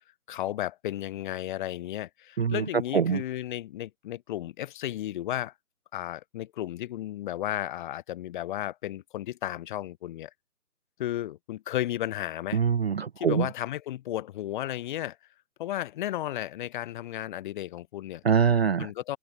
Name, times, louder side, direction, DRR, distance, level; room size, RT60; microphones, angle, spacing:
voice 1, 0.3-5.5 5.9-10.3 11.0-12.6 13.2-15.2 15.6-18.2 18.8-19.2, left 13 dB, 30° left, 4.1 m, -34 dB
voice 2, 12.5-13.5 18.2-18.9, right 7 dB, 40° right, 0.7 m, -23 dB
figure-of-eight pair, 140°, 47 cm